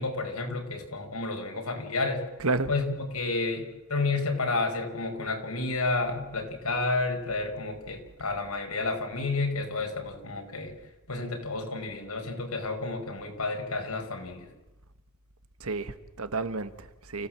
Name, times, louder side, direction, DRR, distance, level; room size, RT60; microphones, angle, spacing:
voice 1, 0.0-2.2 2.7-10.7 11.1-14.5, left 3 dB, 85° left, 3 dB, 4.8 m, -31 dB
voice 2, 2.4-2.7 15.6-17.3, right 3 dB, 80° right, 12 dB, 1.5 m, -31 dB
29.5 x 16.5 x 7.6 m, 1.0 s
head